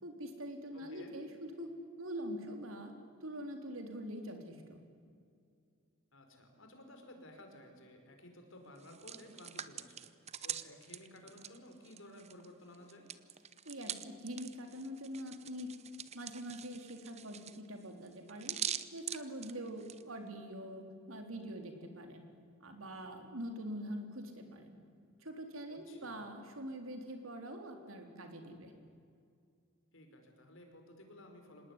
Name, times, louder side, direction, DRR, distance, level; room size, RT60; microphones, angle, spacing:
voice 1, 0.0-1.7 2.0-2.9 3.2-4.8 13.7-15.7 16.1-18.6 18.9-22.2 22.6-24.8 25.2-28.7, equal, 75° right, 5 dB, 3.8 m, -44 dB
voice 2, 0.7-1.1 6.1-10.1 10.4-13.1 25.7-26.2 29.9-31.7, left 1 dB, 70° left, 4 dB, 5.0 m, -55 dB
Hands, 8.8-12.5 12.7-20.0, right 9 dB, 30° right, 0.8 m, -44 dB
26.0 x 19.5 x 9.9 m, 2.3 s
head